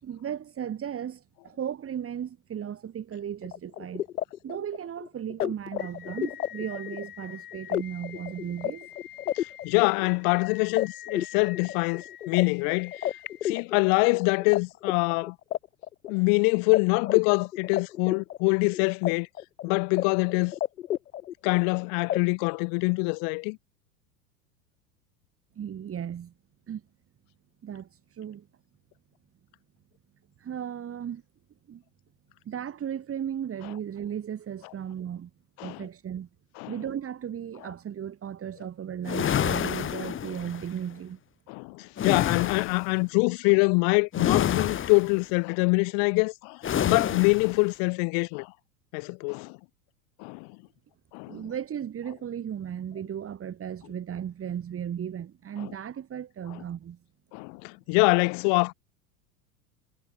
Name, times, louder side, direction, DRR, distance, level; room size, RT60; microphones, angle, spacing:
voice 1, 0.0-4.0 4.4-8.9 25.6-26.3 26.7-26.8 27.6-28.5 30.4-31.2 31.7-31.8 32.5-35.3 35.6-36.3 36.7-41.2 51.3-57.0, right 9 dB, 30° right, 5.0 m, -36 dB
sound 1, 3.4-14.6 14.8-16.4 16.7-16.8 17.1-19.1 19.4-20.0 20.3-21.7 22.1-22.2, left 12 dB, 75° left, 2.2 m, -33 dB
voice 2, 9.3-12.9 13.4-15.4 16.1-19.3 19.6-20.5 21.4-23.6 35.6-35.9 36.6-36.7 39.6-39.7 41.5-48.5 48.9-49.6 50.2-50.5 51.1-51.4 55.6-55.7 57.3-58.7, left 40 dB or more, 50° left, 0.8 m, -25 dB
sound 2, 39.0-40.7 42.0-42.9 44.1-45.2 46.6-47.6, left 9 dB, 25° left, 1.7 m, -28 dB
hypercardioid pair, 90°, 45 cm